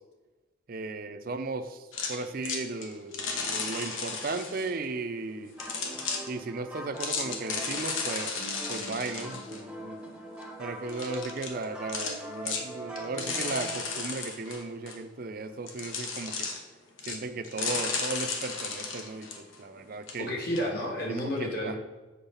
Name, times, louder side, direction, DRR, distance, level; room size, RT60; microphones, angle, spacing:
voice 1, 0.7-5.5 6.3-10.0 10.6-16.5 17.0-20.3 21.4-21.8, right 3 dB, 45° right, 9 dB, 0.5 m, -36 dB
sound 1, 1.9-4.7 5.6-6.3 7.0-9.6 10.1-10.2 10.4-10.5 10.9-11.6 11.9-12.2 12.5-12.6 13.0-15.0 15.7-16.6 17.0-17.2 17.4-19.8 20.1-20.2 20.5-20.6, left 4 dB, 80° left, 1.0 m, -34 dB
sound 2, 5.6-13.8, right 1 dB, 5° right, 0.8 m, -42 dB
voice 2, 20.2-21.8, equal, 50° left, -1 dB, 1.7 m, -31 dB
7.3 x 3.9 x 5.6 m, 1.2 s
head